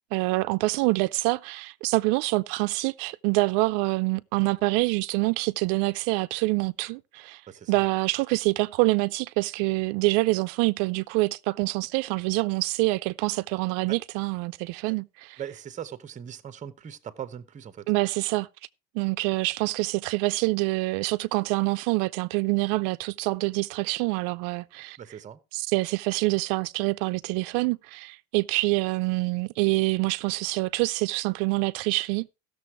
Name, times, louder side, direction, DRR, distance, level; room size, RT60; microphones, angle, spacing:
voice 1, 0.1-7.4 7.7-15.4 17.9-18.5 18.9-25.0 25.5-32.3, right 23 dB, 55° right, 0.5 m, -26 dB
voice 2, 7.5-7.8 13.9-14.0 15.4-17.8 25.0-25.4, right 9 dB, 15° right, 0.8 m, -40 dB
16.0 x 6.9 x 4.6 m
cardioid pair, 160°, 43 cm